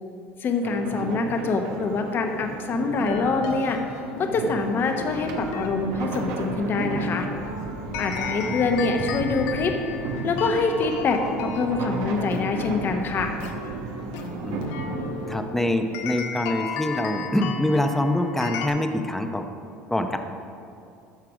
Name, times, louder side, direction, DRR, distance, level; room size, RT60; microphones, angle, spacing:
voice 1, 0.4-3.8 4.2-7.3 8.0-9.7 10.2-13.3, left 4 dB, 40° left, 4 dB, 1.0 m, -25 dB
sound 1, 0.6-15.4, right 3 dB, 70° right, 1.3 m, -33 dB
sound 2, 3.0-18.7, left 6 dB, 75° left, 0.9 m, -36 dB
voice 2, 15.3-19.4 19.9-20.2, left 1 dB, 5° left, 6 dB, 0.8 m, -25 dB
13.0 x 4.7 x 4.9 m, 2.5 s
supercardioid pair, 95°, 5 cm